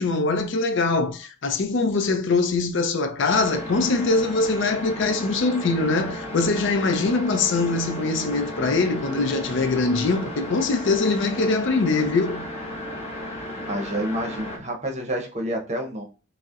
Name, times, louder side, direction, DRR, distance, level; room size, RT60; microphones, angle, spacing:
voice 1, 0.0-12.5, left 3 dB, 60° left, 0.5 m, -23 dB
sound 1, 3.3-14.6, equal, 30° left, 0.9 m, -34 dB
voice 2, 13.7-16.0, right 1 dB, 35° right, 0.7 m, -28 dB
5.2 x 2.1 x 2.4 m
head